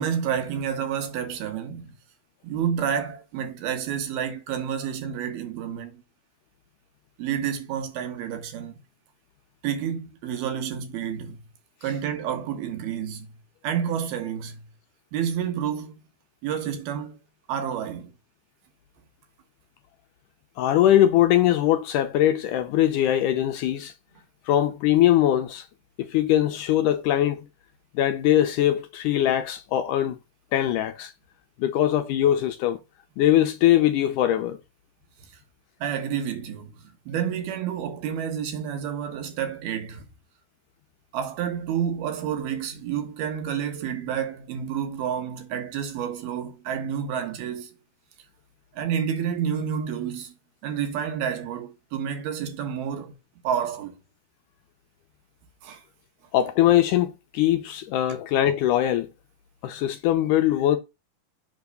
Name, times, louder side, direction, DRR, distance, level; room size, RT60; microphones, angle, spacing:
voice 1, 0.0-1.9 2.4-6.0 7.2-8.7 9.6-11.4 11.8-13.3 13.6-14.7 15.1-15.9 16.4-17.2 17.5-18.1 35.8-40.1 41.1-47.8 48.8-50.3 50.6-53.1 53.4-54.0 55.6-55.8, right 8 dB, 90° right, 3.3 m, -29 dB
voice 2, 20.6-23.9 24.5-25.6 26.0-27.4 28.0-30.2 30.5-31.1 31.6-32.8 33.2-34.6 56.3-59.1 59.6-60.8, left 12 dB, 80° left, 1.9 m, -21 dB
7.7 x 3.5 x 6.5 m
omnidirectional pair, 4.3 m